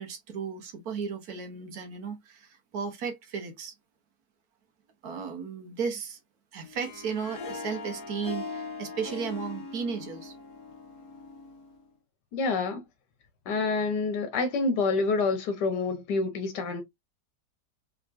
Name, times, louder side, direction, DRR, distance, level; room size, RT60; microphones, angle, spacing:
voice 1, 0.0-3.7 5.0-6.2 6.5-10.3, right 6 dB, 65° right, 1.4 m, -35 dB
Harp, 6.6-11.8, left 3 dB, 65° left, 1.4 m, -40 dB
voice 2, 12.3-12.8 13.5-16.8, left 3 dB, 90° left, 1.5 m, -27 dB
3.5 x 3.5 x 2.4 m
omnidirectional pair, 1.8 m